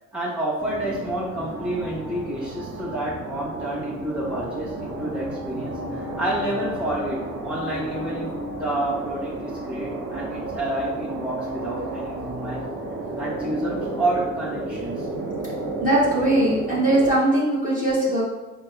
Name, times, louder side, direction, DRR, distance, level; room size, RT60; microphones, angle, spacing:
voice 1, 0.1-12.7 13.2-15.1, right 1 dB, 5° right, -8 dB, 1.4 m, -29 dB
sound 1, 0.6-17.2, right 2 dB, 50° right, 0.8 m, -32 dB
voice 2, 15.8-18.2, right 1 dB, 25° right, -8 dB, 1.3 m, -20 dB
4.2 x 2.1 x 3.3 m, 1.1 s
cardioid pair, 85°, 30 cm